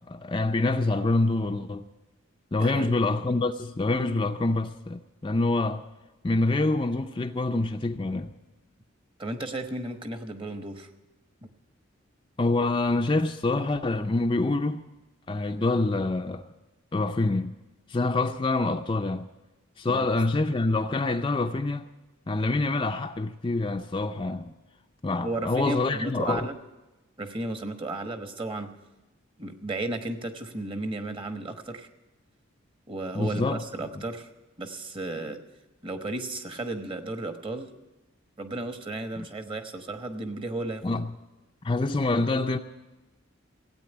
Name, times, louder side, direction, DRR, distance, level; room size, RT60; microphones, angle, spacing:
voice 1, 0.0-1.9 2.5-5.8 6.2-8.3 12.4-14.8 15.3-16.5 16.9-17.6 17.9-19.3 19.8-21.9 22.3-24.5 25.0-26.5 33.2-33.6 40.8-41.1 41.6-42.6, left 2 dB, 25° left, 0.5 m, -26 dB
voice 2, 2.6-2.9 9.2-10.9 11.4-11.5 19.9-20.1 25.2-26.6 27.2-28.7 29.4-31.9 32.9-34.3 34.6-35.4 35.8-37.7 38.4-41.0, right 2 dB, 25° right, 1.1 m, -34 dB
16.5 x 8.7 x 9.8 m
head